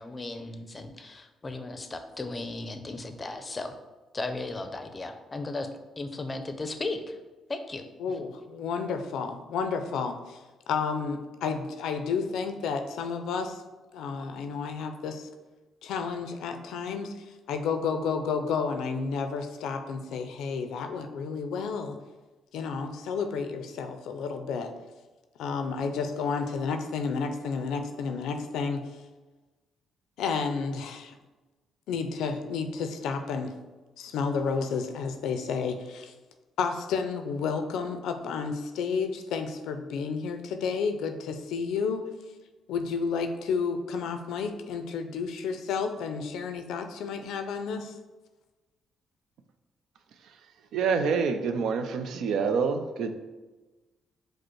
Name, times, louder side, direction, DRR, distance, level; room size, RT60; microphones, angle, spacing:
voice 1, 0.0-3.7 4.1-5.7 6.0-7.2 7.5-8.1, left 2 dB, 30° left, 8 dB, 0.5 m, -36 dB
voice 2, 8.0-10.4 10.7-13.6 13.9-15.3 15.8-17.1 17.5-22.0 22.5-24.7 25.4-28.8 30.2-31.1 31.9-33.5 34.0-36.1 36.6-42.1 42.7-47.9, left 5 dB, 85° left, 7 dB, 0.4 m, -31 dB
voice 3, 50.7-53.1, right 5 dB, 75° right, 8 dB, 0.4 m, -27 dB
5.0 x 2.1 x 4.4 m, 1.2 s
cardioid pair, 90°, 0 cm